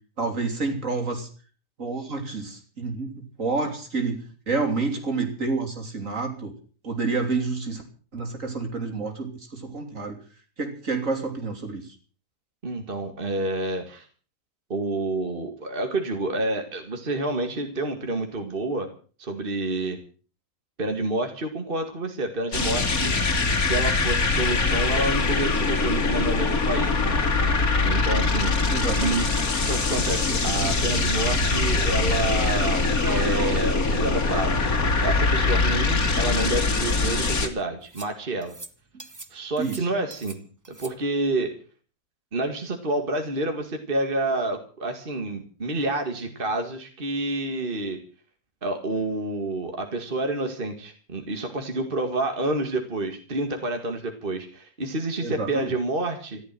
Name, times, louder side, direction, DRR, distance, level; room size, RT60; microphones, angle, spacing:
voice 1, 0.2-1.3 1.8-6.5 6.8-7.8 8.1-10.2 10.6-11.8 28.7-29.2 39.6-39.8 55.2-55.7, right 3 dB, 55° right, 4 dB, 3.5 m, -29 dB
voice 2, 12.6-14.1 14.7-18.9 19.2-20.0 20.8-27.2 27.8-28.5 29.0-29.3 29.6-34.6 35.0-38.5 39.3-40.4 40.8-41.5 42.3-48.0 48.6-56.4, right 2 dB, 35° right, 5 dB, 2.1 m, -29 dB
sound 1, 22.5-37.5, left 3 dB, 65° left, 2.6 m, -23 dB
sound 2, 33.0-33.7 34.0-34.1 34.4-34.5 35.5-35.6 36.4-37.0 37.9-38.1 38.4-38.7 39.0-39.3 39.6-40.4 40.6-40.9, right 2 dB, 15° right, 0.9 m, -37 dB
14.5 x 12.0 x 7.5 m, 0.41 s
omnidirectional pair, 1.6 m